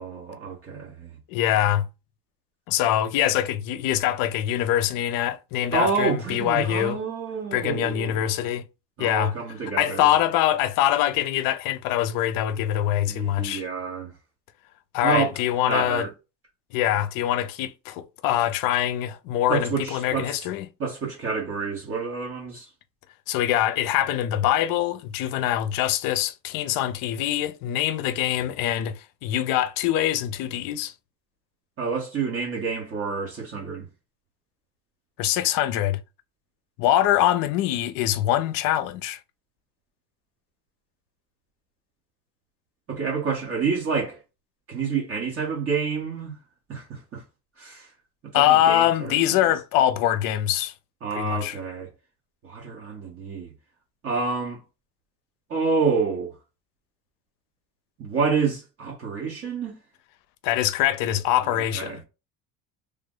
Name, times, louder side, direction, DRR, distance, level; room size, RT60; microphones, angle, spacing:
voice 1, 0.0-1.2 5.7-8.2 9.0-10.1 13.1-14.1 15.0-15.3 15.7-16.1 19.5-20.4 20.8-22.7 31.8-33.9 42.9-44.2 44.7-46.4 46.7-47.2 47.6-47.9 48.2-49.4 51.0-51.9 52.4-53.5 54.0-54.6 55.5-56.3 58.0-59.8 61.5-62.0, right 5 dB, 40° right, 1.1 m, -28 dB
voice 2, 1.3-1.9 2.7-7.0 7.5-8.6 9.0-9.3 9.8-13.6 14.9-16.1 16.7-20.7 23.3-30.9 35.2-36.0 36.8-39.2 48.3-50.7 51.1-51.6 60.4-62.0, left 12 dB, 70° left, 0.5 m, -24 dB
3.3 x 2.1 x 3.7 m
cardioid pair, 140°, 35 cm